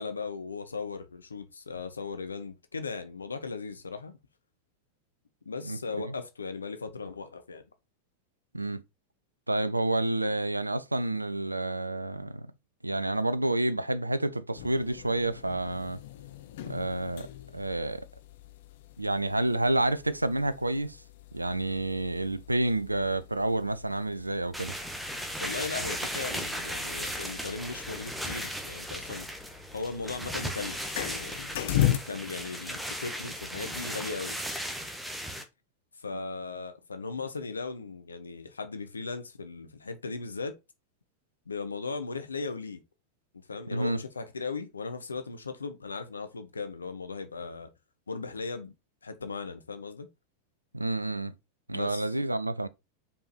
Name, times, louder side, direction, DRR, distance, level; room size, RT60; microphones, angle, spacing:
voice 1, 0.0-4.2 5.4-7.6 25.4-29.3 29.7-34.4 36.0-40.6 41.5-42.8 43.5-47.7 48.1-48.7 49.0-50.1 51.7-52.1, left 4 dB, 75° left, 1.1 m, -37 dB
voice 2, 9.5-12.5 12.8-16.0 16.7-17.3 17.5-18.1 19.0-21.0 21.3-24.7 43.7-44.0 50.7-51.3 51.7-52.7, right 2 dB, 85° right, 0.5 m, -29 dB
sound 1, 14.5-32.0, left 12 dB, 55° left, 0.8 m, -38 dB
sound 2, 24.5-35.4, equal, ahead, 1.4 m, -36 dB
5.4 x 5.1 x 4.4 m
figure-of-eight pair, 90°, 0 cm